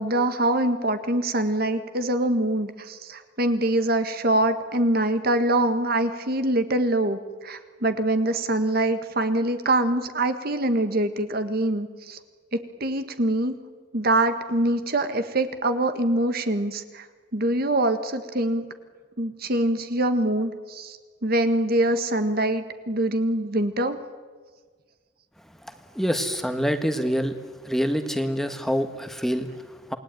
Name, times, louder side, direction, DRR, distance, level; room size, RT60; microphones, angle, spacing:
voice 1, 0.0-12.2 12.8-13.5 13.9-17.1 17.3-18.7 19.2-24.0, right 1 dB, 55° right, 9 dB, 1.7 m, -24 dB
voice 2, 25.6-27.4 27.6-30.0, equal, ahead, 8 dB, 1.5 m, -26 dB
28.0 x 20.0 x 9.2 m, 1.5 s
head